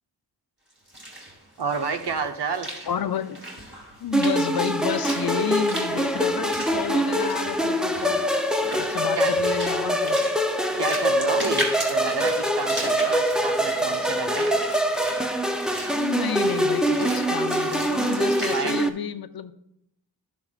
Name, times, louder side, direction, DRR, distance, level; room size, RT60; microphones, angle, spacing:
Walk footsteps / Splash splatter, 0.7-18.6, equal, 30° right, 2.4 m, -37 dB
voice 1, 1.6-2.7 9.1-9.3 10.8-14.5 18.5-18.8, right 5 dB, 80° right, 5 dB, 0.9 m, -29 dB
voice 2, 2.9-3.4 4.0-8.2 8.7-10.2 15.9-19.5, left 8 dB, 65° left, 11 dB, 0.6 m, -31 dB
sound 1, 4.1-18.9, equal, ahead, 0.5 m, -24 dB
12.0 x 6.9 x 2.4 m, 0.77 s
wide cardioid pair, 85°, 40 cm